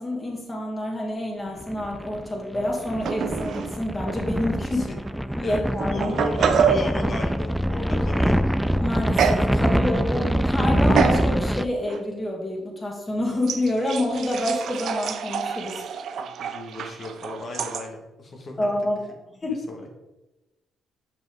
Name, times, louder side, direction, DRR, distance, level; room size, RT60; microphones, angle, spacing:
voice 1, 0.0-4.8 5.4-6.2 8.8-15.9 18.6-19.0 19.4-19.5, left 1 dB, 25° left, -1 dB, 2.4 m, -27 dB
sound 1, 1.6-11.6, equal, 5° right, 0.3 m, -24 dB
sound 2, 3.0-3.8 4.0-4.2 5.1-5.2 5.8-6.9 9.2-9.5 9.9-10.3 11.0-11.3 11.9-12.0 13.4-17.9, right 7 dB, 70° right, 0.5 m, -26 dB
voice 2, 4.6-5.0 5.4-5.6 5.9-8.5 9.7-10.1 16.2-18.7 19.4-19.9, left 2 dB, 50° left, 2 dB, 1.5 m, -35 dB
6.9 x 5.7 x 3.5 m, 1.0 s
supercardioid pair, 60°, 0 cm